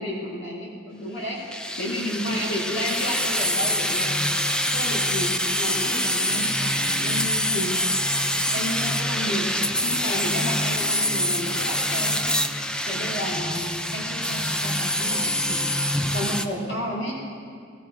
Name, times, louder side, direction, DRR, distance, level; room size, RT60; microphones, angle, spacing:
voice 1, 0.0-1.4 1.8-4.2 4.6-7.7 8.5-9.5 9.8-12.2 12.9-15.6 16.1-17.1, equal, 65° left, -3 dB, 2.4 m, -31 dB
sound 1, 1.5-16.4, left 1 dB, 5° left, 0.5 m, -25 dB
16.5 x 16.0 x 5.0 m, 2.2 s
head